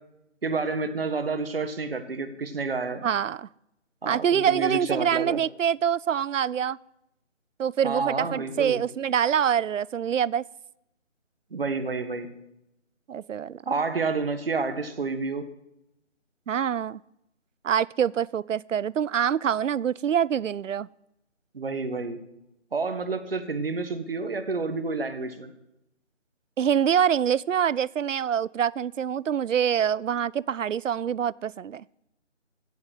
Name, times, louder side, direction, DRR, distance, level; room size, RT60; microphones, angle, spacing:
voice 1, 0.4-3.0 4.0-5.4 7.8-8.8 11.5-12.3 13.6-15.5 21.5-22.2 22.7-25.5, right 4 dB, 50° right, 1.6 m, -29 dB
voice 2, 3.0-3.5 4.1-6.8 7.6-10.4 13.1-13.6 16.5-17.0 17.6-20.9 26.6-31.8, right 8 dB, 85° right, 0.5 m, -25 dB
16.0 x 7.3 x 8.2 m
figure-of-eight pair, 170°, 37 cm